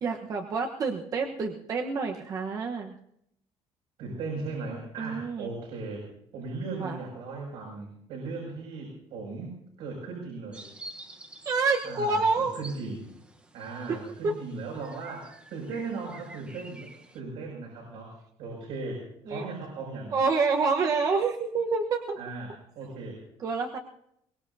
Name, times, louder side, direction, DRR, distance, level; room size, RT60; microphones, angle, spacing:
voice 1, 0.0-2.9 5.0-5.5 6.7-7.0 11.4-12.6 13.9-14.0 14.2-14.3 19.3-19.4 20.1-22.2 23.4-23.8, right 4 dB, 35° right, 3 dB, 1.1 m, -27 dB
voice 2, 4.0-6.1 6.3-10.6 11.8-13.1 13.5-20.1 22.2-23.2, right 3 dB, 80° right, -2 dB, 6.5 m, -38 dB
sound 1, 10.5-17.2, right 2 dB, 10° right, 1.1 m, -49 dB
23.0 x 20.0 x 2.8 m, 0.74 s
cardioid pair, 175°, 10 cm